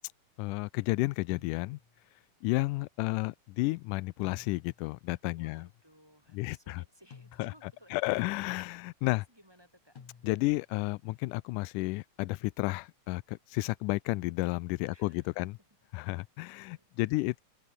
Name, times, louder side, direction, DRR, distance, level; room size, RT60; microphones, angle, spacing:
voice 1, 0.4-1.8 2.4-5.7 6.3-6.8 7.4-7.5 7.9-9.2 10.2-15.6 15.9-17.4, left 21 dB, 90° left, 2.1 m, -32 dB
sound 1, 1.3-2.1 4.2-5.0 7.1-7.9 10.0-10.7, left 6 dB, 65° left, 4.7 m, -54 dB
voice 2, 5.4-8.5 9.1-10.0 14.9-15.3 16.1-16.3 16.7-17.2, equal, 5° right, 5.4 m, -60 dB
open air
omnidirectional pair, 3.6 m